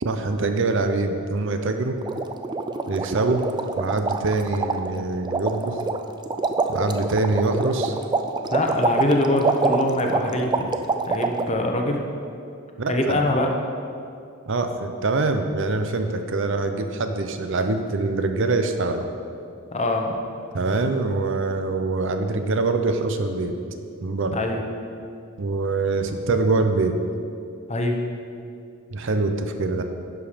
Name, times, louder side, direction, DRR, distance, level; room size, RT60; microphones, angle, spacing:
voice 1, 0.0-2.0 2.9-3.5 3.8-5.9 6.7-8.0 12.8-13.2 14.5-19.1 20.5-23.5 24.0-24.4 25.4-27.0 28.9-29.8, right 3 dB, 65° right, 7 dB, 0.6 m, -24 dB
sound 1, 2.0-11.5, right 3 dB, 20° right, 0.3 m, -26 dB
voice 2, 8.5-10.7 11.1-12.0 12.9-13.5 19.7-20.1 24.3-24.6 27.7-28.0, left 1 dB, 30° left, 2 dB, 0.8 m, -23 dB
11.0 x 5.0 x 5.1 m, 2.5 s
head